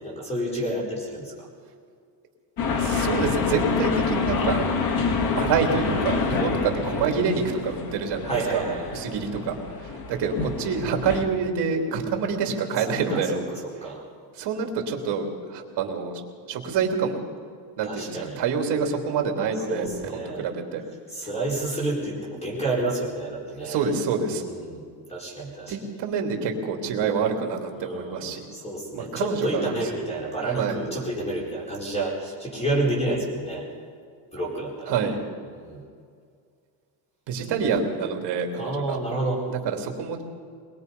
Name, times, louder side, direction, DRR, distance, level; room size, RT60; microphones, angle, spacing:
voice 1, 0.0-1.5 6.4-6.8 8.2-9.0 13.1-14.0 17.8-18.4 19.7-20.4 21.1-23.8 24.3-24.8 25.1-25.8 27.7-33.7 34.3-35.1 35.6-35.8 38.6-39.4, right 2 dB, 15° left, -4 dB, 4.5 m, -29 dB
sound 1, 2.6-11.3, left 4 dB, 50° left, 2.3 m, -27 dB
voice 2, 2.8-4.6 5.4-8.6 8.9-13.4 13.8-13.9 14.3-16.2 16.5-17.2 17.8-20.8 23.5-24.4 25.7-28.4 28.9-29.6 30.5-30.8 34.9-35.2 37.3-39.0 39.5-40.2, right 5 dB, 60° right, 3 dB, 3.1 m, -27 dB
22.0 x 22.0 x 5.4 m, 2.1 s
cardioid pair, 175°, 46 cm